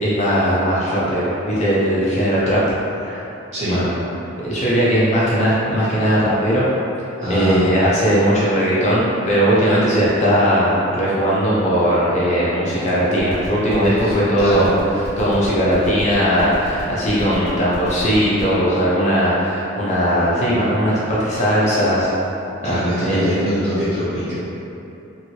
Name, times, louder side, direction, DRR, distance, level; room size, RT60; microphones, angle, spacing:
voice 1, 0.0-2.6 3.0-3.2 3.7-3.9 4.4-6.6 7.3-22.1 22.6-23.4, equal, 35° left, -8 dB, 0.5 m, -18 dB
voice 2, 7.2-7.7 14.0-14.7 22.6-24.3, equal, 35° right, -13 dB, 1.2 m, -23 dB
sound 1, 13.2-18.5, equal, 5° left, 1.1 m, -35 dB
2.9 x 2.6 x 2.7 m, 2.9 s
head